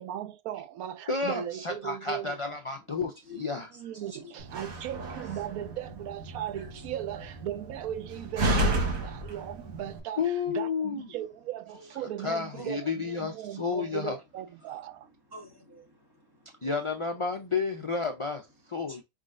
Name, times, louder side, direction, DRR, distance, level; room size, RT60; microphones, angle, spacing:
voice 1, 0.0-2.6 3.7-15.1, right 11 dB, 90° right, 1.1 m, -38 dB
voice 2, 1.1-3.7 10.2-11.1 12.2-14.2 16.6-19.0, left 5 dB, 55° left, 0.3 m, -31 dB
voice 3, 3.2-4.3 6.6-6.7 7.1-7.3 8.6-9.3 11.7-11.8 12.5-12.7 15.3-16.8 18.9-19.0, left 1 dB, 15° right, 1.6 m, -49 dB
Slam, 4.4-10.0, right 1 dB, 70° right, 1.6 m, -32 dB
4.9 x 3.7 x 2.5 m
omnidirectional pair, 1.5 m